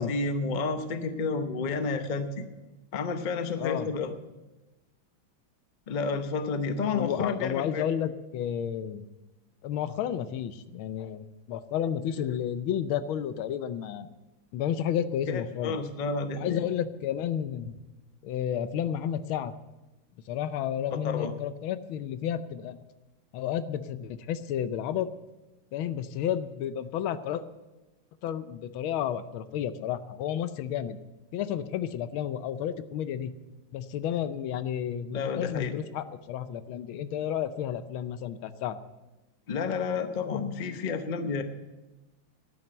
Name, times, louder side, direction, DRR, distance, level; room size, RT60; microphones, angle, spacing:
voice 1, 0.0-2.5 2.9-4.2 5.9-7.9 15.3-16.6 20.9-21.3 35.1-35.7 39.5-41.4, left 4 dB, 45° left, 8 dB, 0.6 m, -30 dB
voice 2, 3.6-3.9 6.9-9.1 9.6-14.1 14.5-15.8 16.4-17.8 18.2-19.5 20.3-22.8 23.3-25.1 25.7-27.4 28.2-31.0 31.3-33.3 33.7-38.8, left 9 dB, 90° left, 13 dB, 1.5 m, -31 dB
11.5 x 9.2 x 7.9 m, 1.1 s
omnidirectional pair, 2.2 m